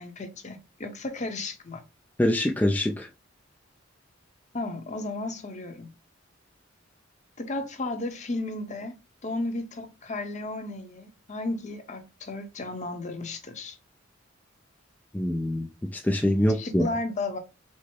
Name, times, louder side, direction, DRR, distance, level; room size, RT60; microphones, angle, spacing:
voice 1, 0.0-1.8 4.5-5.9 7.4-8.9 9.2-13.8 16.5-17.4, left 2 dB, 40° left, 0.8 m, -34 dB
voice 2, 2.2-3.1 15.1-16.9, left 1 dB, 10° left, 0.3 m, -25 dB
4.5 x 2.0 x 4.5 m
head